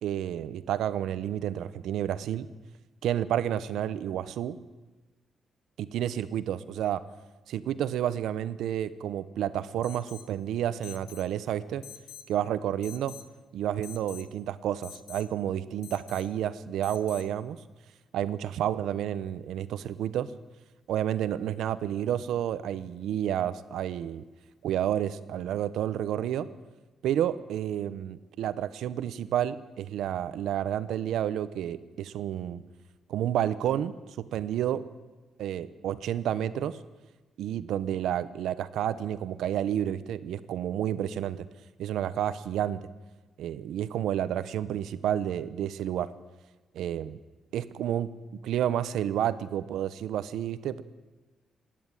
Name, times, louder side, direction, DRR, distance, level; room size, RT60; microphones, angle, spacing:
voice 1, 0.0-2.5 3.0-4.6 5.8-7.0 7.5-11.8 12.3-13.1 13.5-17.6 18.1-20.3 20.9-24.2 24.6-26.5 27.0-32.6 33.1-33.9 34.3-34.8 35.4-36.8 37.4-41.5 41.8-42.8 43.4-46.1 46.7-47.2 47.5-48.1 48.4-50.8, right 10 dB, 90° right, 14 dB, 1.1 m, -30 dB
Alarm, 9.8-10.3 10.8-11.3 11.8-12.3 12.8-13.3 13.8-14.3 14.8-15.3 15.8-16.3 16.8-17.3, left 11 dB, 70° left, 1.5 m, -47 dB
27.0 x 11.0 x 9.2 m, 1.2 s
cardioid pair, 175°, 0 cm